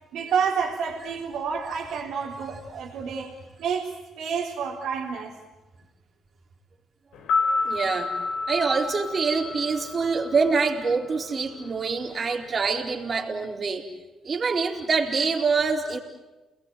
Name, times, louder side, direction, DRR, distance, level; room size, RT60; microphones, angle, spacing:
voice 1, 0.1-3.3 3.6-5.4, right 6 dB, 80° right, 3.8 m, -29 dB
sound 1, 7.1-11.3 11.6-11.7, left 4 dB, 85° left, 3.6 m, -29 dB
voice 2, 7.6-8.1 8.5-13.9 14.2-16.0, right 4 dB, 40° right, 4.3 m, -25 dB
29.5 x 20.5 x 9.3 m
cardioid pair, 90°, 0 cm